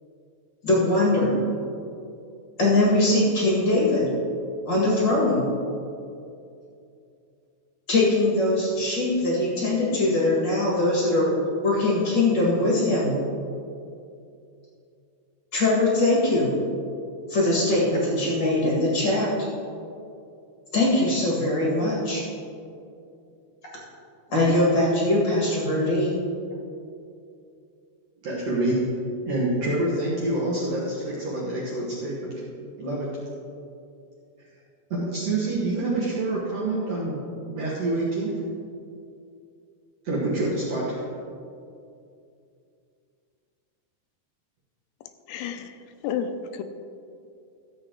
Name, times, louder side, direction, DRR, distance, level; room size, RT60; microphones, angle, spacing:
voice 1, 0.6-1.4 2.6-4.1 4.7-5.4 7.9-11.3 11.6-13.1 15.5-16.5 17.3-19.3 20.7-22.2 24.3-26.1, left 2 dB, 40° left, -5 dB, 1.6 m, -21 dB
voice 2, 28.2-28.8 29.3-32.3 32.8-33.1 34.9-37.2 37.4-38.4 40.0-41.0, right 2 dB, 55° right, -7 dB, 1.9 m, -27 dB
voice 3, 45.3-45.8 46.0-46.6, left 7 dB, 85° left, 8 dB, 2.8 m, -30 dB
14.0 x 7.6 x 3.8 m, 2.5 s
omnidirectional pair, 4.8 m